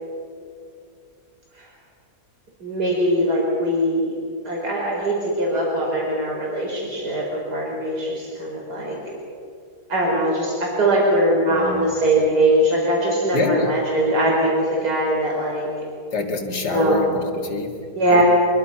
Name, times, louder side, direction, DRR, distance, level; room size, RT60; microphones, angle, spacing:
voice 1, 2.6-4.2 4.4-9.0 9.9-15.7 16.6-17.0 17.9-18.2, right 1 dB, 80° right, -3 dB, 5.0 m, -21 dB
voice 2, 11.5-11.9 13.3-13.8 16.1-17.8 18.1-18.2, left 3 dB, 90° left, 2 dB, 2.9 m, -25 dB
25.0 x 22.5 x 5.8 m, 2.4 s
omnidirectional pair, 1.7 m